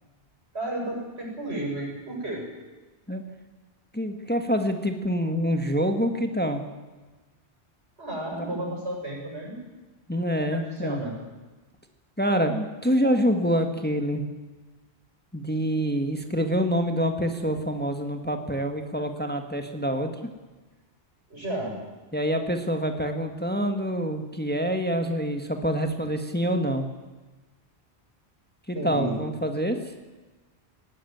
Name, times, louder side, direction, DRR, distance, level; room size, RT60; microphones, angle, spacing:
voice 1, 0.5-2.4 8.0-9.6 10.5-11.2 21.3-21.7 28.7-29.1, right 1 dB, 80° right, -1 dB, 7.8 m, -32 dB
voice 2, 3.9-6.6 8.3-8.7 10.1-11.0 12.2-14.2 15.3-20.1 22.1-26.9 28.7-29.8, equal, 10° left, 6 dB, 1.6 m, -26 dB
19.0 x 17.5 x 9.4 m, 1.2 s
omnidirectional pair, 1.1 m